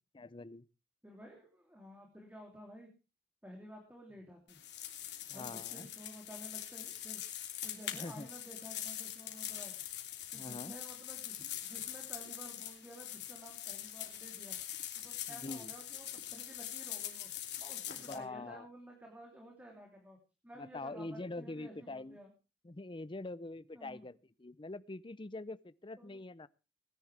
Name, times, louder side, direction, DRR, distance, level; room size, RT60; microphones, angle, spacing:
voice 1, 0.1-0.7 5.3-5.9 7.9-8.3 10.3-10.7 15.3-15.7 18.1-18.7 20.6-22.2 22.6-26.5, left 2 dB, 30° left, 0.6 m, -44 dB
voice 2, 1.0-2.9 3.4-4.6 5.3-7.2 7.6-9.7 10.3-14.6 14.9-17.3 17.6-20.2 20.4-22.3 23.7-24.0 26.0-26.2, equal, 10° right, 3.2 m, -53 dB
sound 1, 4.5-18.2, left 11 dB, 70° left, 3.2 m, -43 dB
20.5 x 11.0 x 3.4 m
head